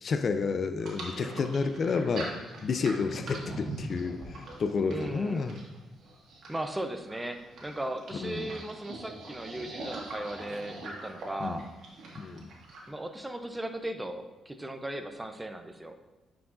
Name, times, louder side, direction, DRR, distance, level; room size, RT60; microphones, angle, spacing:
voice 1, 0.0-2.3 2.6-5.6 8.2-8.5 11.4-11.6 12.2-12.5, left 4 dB, 50° left, 9 dB, 0.4 m, -30 dB
sound 1, 0.8-12.9, right 2 dB, 70° right, 1.6 m, -44 dB
sound 2, 2.5-8.6, right 2 dB, 45° right, 1.2 m, -45 dB
voice 2, 4.9-5.5 6.5-11.7 12.9-16.0, right 1 dB, 10° right, 7 dB, 0.5 m, -37 dB
9.2 x 4.7 x 2.5 m, 1.1 s
cardioid pair, 90°, 0 cm